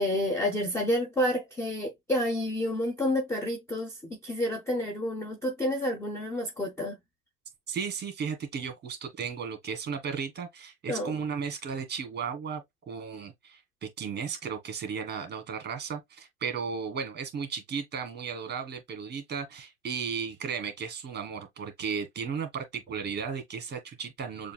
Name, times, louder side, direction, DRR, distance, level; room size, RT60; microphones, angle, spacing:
voice 1, 0.0-7.0 10.9-11.1, left 1 dB, 5° left, 0.6 m, -29 dB
voice 2, 7.7-24.5, right 6 dB, 20° right, 1.5 m, -35 dB
6.8 x 2.6 x 2.2 m
hypercardioid pair, 95°, 46 cm